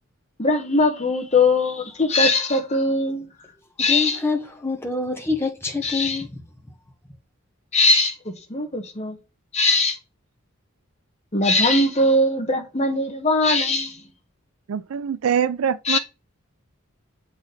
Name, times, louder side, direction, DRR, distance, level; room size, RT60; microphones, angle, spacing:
voice 1, 0.4-3.3 3.8-4.2 5.8-6.2 7.7-9.2 9.5-10.0 11.3-14.0 15.8-16.0, left 2 dB, 30° left, 1.2 m, -20 dB
voice 2, 3.9-6.3, left 3 dB, 10° left, 1.2 m, -26 dB
voice 3, 14.7-16.0, right 8 dB, 85° right, 0.4 m, -23 dB
7.2 x 4.2 x 3.2 m
head